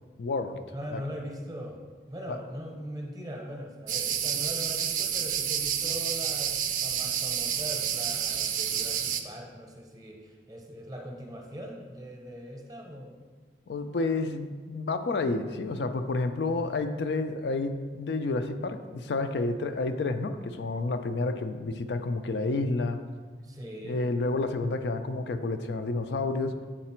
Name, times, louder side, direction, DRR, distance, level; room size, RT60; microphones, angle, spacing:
voice 1, 0.2-0.6 0.9-1.0 2.3-2.4 13.7-23.0 23.8-26.5, left 3 dB, 70° left, 8 dB, 0.4 m, -30 dB
voice 2, 0.7-1.8 2.1-13.2 23.4-24.0, equal, 20° right, 1 dB, 0.7 m, -41 dB
sound 1, 3.9-9.2, right 9 dB, 45° right, 0.4 m, -29 dB
7.6 x 4.0 x 4.4 m, 1.5 s
head